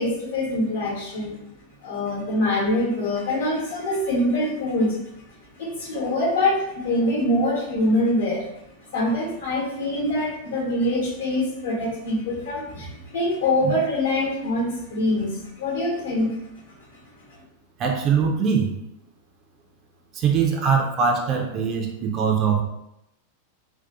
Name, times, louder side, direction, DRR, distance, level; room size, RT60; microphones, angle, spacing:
voice 1, 0.0-1.3 1.8-5.0 5.5-8.5 8.8-16.3, left 1 dB, 60° left, -3 dB, 0.9 m, -24 dB
voice 2, 17.8-18.7 20.1-22.6, right 6 dB, 35° right, 2 dB, 0.4 m, -22 dB
2.6 x 2.2 x 2.4 m, 0.85 s
figure-of-eight pair, 90°, 0 cm